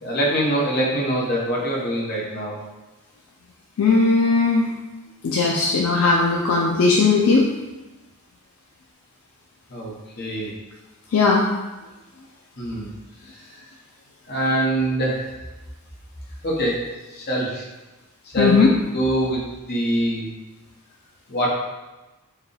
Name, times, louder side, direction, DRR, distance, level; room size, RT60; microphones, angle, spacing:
voice 1, 0.0-2.6 9.7-10.5 12.6-12.9 13.3-13.4 14.3-15.3 16.4-17.7 18.2-20.3 21.3-21.5, right 1 dB, 50° left, -4 dB, 0.9 m, -24 dB
voice 2, 3.8-4.7 5.2-7.5 11.1-11.5 18.4-18.7, left 4 dB, 75° left, -2 dB, 0.4 m, -17 dB
4.7 x 2.3 x 3.3 m, 1.1 s
head